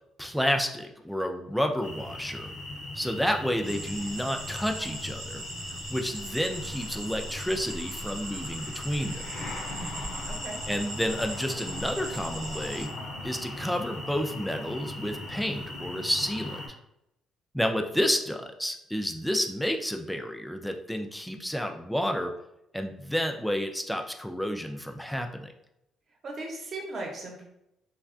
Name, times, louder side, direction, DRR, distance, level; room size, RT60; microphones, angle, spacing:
voice 1, 0.2-2.5 2.9-5.4 5.9-9.2 10.7-12.9 13.2-16.6 17.5-22.3 22.7-25.5, equal, ahead, 4 dB, 0.3 m, -30 dB
sound 1, 1.8-16.7, left 2 dB, 60° left, 0.7 m, -39 dB
sound 2, 3.6-12.8, right 1 dB, 90° right, 0.9 m, -40 dB
voice 2, 9.7-10.6 26.2-27.4, right 2 dB, 45° right, 0 dB, 0.9 m, -38 dB
3.2 x 2.2 x 2.5 m, 0.83 s
cardioid pair, 100°, 0 cm